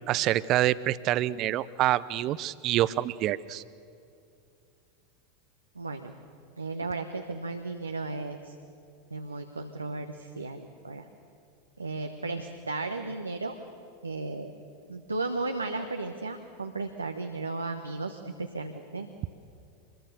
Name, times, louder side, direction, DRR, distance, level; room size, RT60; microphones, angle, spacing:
voice 1, 0.1-3.6, right 14 dB, 40° right, 18 dB, 0.6 m, -26 dB
voice 2, 5.7-6.1 6.6-8.6 9.1-11.1 11.8-13.5 14.0-14.5 14.9-19.1, right 3 dB, 85° right, 5 dB, 1.1 m, -35 dB
25.0 x 22.0 x 6.8 m, 2.5 s
figure-of-eight pair, 85°, 0 cm